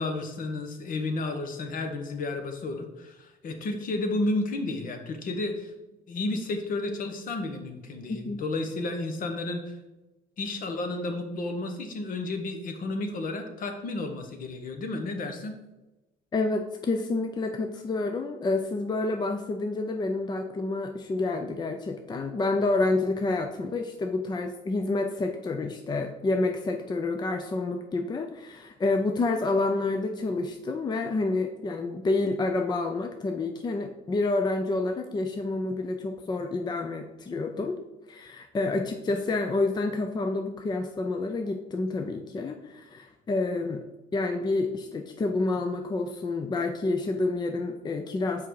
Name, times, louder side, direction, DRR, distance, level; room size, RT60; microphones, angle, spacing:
voice 1, 0.0-5.7 6.1-9.8 10.4-15.6, left 2 dB, 55° left, 6 dB, 1.1 m, -32 dB
voice 2, 16.3-37.8 38.1-43.8 44.1-48.5, left 3 dB, 25° left, 5 dB, 0.5 m, -28 dB
5.8 x 4.9 x 4.7 m, 1.0 s
cardioid pair, 110°, 17 cm